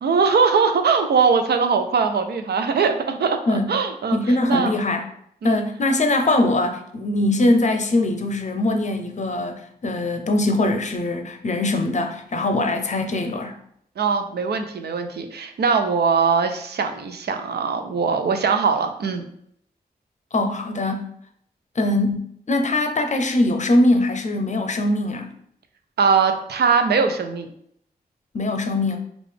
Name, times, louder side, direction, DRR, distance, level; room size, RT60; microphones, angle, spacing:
voice 1, 0.0-4.7 5.4-5.6 14.0-19.2 26.0-27.5, right 5 dB, 85° right, 6 dB, 0.4 m, -21 dB
voice 2, 4.1-5.0 5.4-13.6 20.3-21.1 21.8-25.3 28.3-29.0, left 2 dB, 45° left, 5 dB, 0.5 m, -22 dB
3.7 x 2.4 x 3.3 m, 0.70 s
wide cardioid pair, 75°, 17 cm